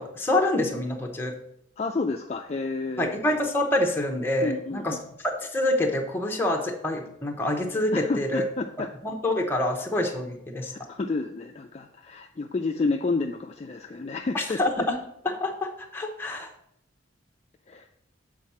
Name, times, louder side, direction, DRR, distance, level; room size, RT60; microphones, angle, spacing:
voice 1, 0.0-1.3 3.0-5.0 5.2-8.4 9.0-10.7 14.3-15.0 15.2-16.5, left 1 dB, 10° left, 1 dB, 0.8 m, -26 dB
voice 2, 1.8-3.1 4.4-5.0 7.9-8.9 10.6-14.9 17.7-17.9, left 3 dB, 30° left, 3 dB, 0.3 m, -30 dB
7.6 x 4.6 x 4.2 m, 0.74 s
head